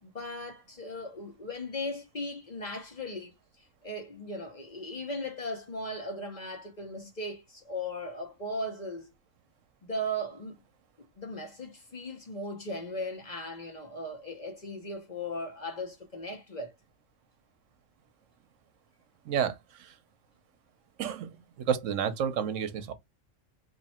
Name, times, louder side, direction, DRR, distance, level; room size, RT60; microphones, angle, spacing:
voice 1, 0.0-3.3 3.8-9.1 9.8-10.6 11.0-16.7, left 1 dB, 40° left, 0.9 m, -37 dB
voice 2, 19.2-20.0 21.0-22.9, right 8 dB, 75° right, 1.0 m, -31 dB
3.0 x 2.7 x 4.2 m
omnidirectional pair, 1.3 m